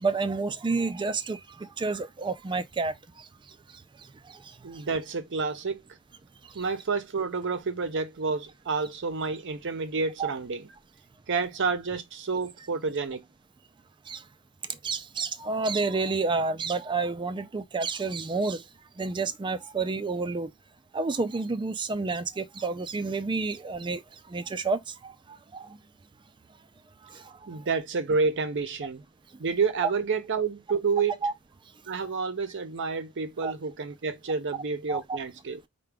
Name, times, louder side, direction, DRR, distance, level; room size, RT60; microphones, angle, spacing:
voice 1, 0.0-2.9 10.2-10.3 14.1-14.2 14.8-18.6 19.0-20.5 20.9-24.0 24.3-25.1 25.5-25.7 31.2-31.3 33.4-33.5 34.9-35.2, right 4 dB, 20° right, 0.4 m, -29 dB
voice 2, 4.6-5.8 6.5-10.7 11.3-13.3 27.5-29.0 29.4-31.1 31.9-35.6, right 4 dB, 55° right, 0.7 m, -29 dB
4.7 x 2.3 x 3.4 m
head